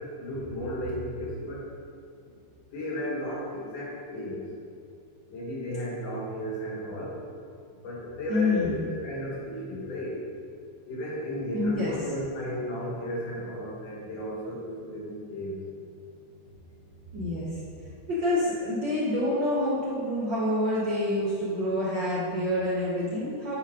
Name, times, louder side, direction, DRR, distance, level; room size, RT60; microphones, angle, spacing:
voice 1, 0.0-1.7 2.7-4.4 5.3-7.1 7.8-10.2 10.9-15.5, equal, 70° left, -5 dB, 3.3 m, -34 dB
voice 2, 8.3-8.8 11.5-11.9 17.1-17.5 18.1-23.6, left 1 dB, 75° right, -7 dB, 1.0 m, -27 dB
8.8 x 5.1 x 5.1 m, 2.4 s
omnidirectional pair, 3.8 m